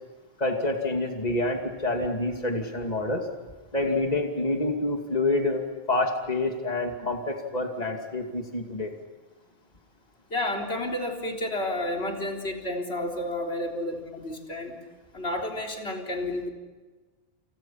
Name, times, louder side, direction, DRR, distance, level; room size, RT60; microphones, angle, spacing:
voice 1, 0.4-3.3 3.7-8.9, left 2 dB, 40° left, 3 dB, 2.8 m, -27 dB
voice 2, 10.3-14.7 15.1-16.5, left 1 dB, 85° left, 1 dB, 4.1 m, -31 dB
29.5 x 29.5 x 5.8 m, 1.3 s
omnidirectional pair, 1.1 m